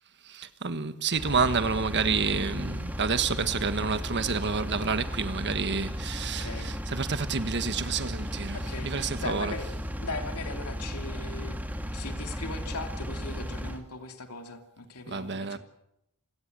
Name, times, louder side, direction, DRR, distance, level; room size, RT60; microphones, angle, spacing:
voice 1, 0.2-9.5 15.1-15.6, right 5 dB, 50° right, 1.5 m, -29 dB
Engine, 1.1-13.8, equal, 5° right, 2.3 m, -35 dB
voice 2, 6.2-6.7 8.5-9.7 10.0-11.6 11.9-15.6, left 3 dB, 85° left, 2.7 m, -39 dB
27.5 x 17.5 x 7.9 m
head